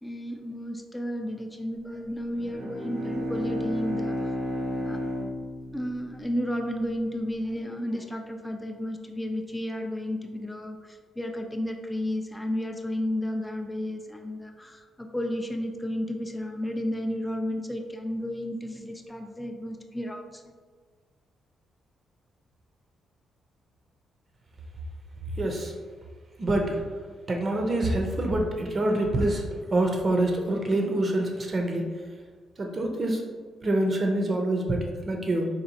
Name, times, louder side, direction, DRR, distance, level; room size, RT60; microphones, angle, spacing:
voice 1, 0.0-4.3 4.8-5.0 5.7-20.4, left 1 dB, 10° left, 3 dB, 0.4 m, -32 dB
Bowed string instrument, 2.3-6.9, equal, 90° right, 0.8 m, -33 dB
voice 2, 25.4-25.7 26.4-26.9 27.3-31.9 32.6-33.2 33.6-35.5, right 1 dB, 45° right, 2 dB, 0.6 m, -26 dB
4.0 x 2.9 x 2.7 m, 1.5 s
supercardioid pair, 60°, 0 cm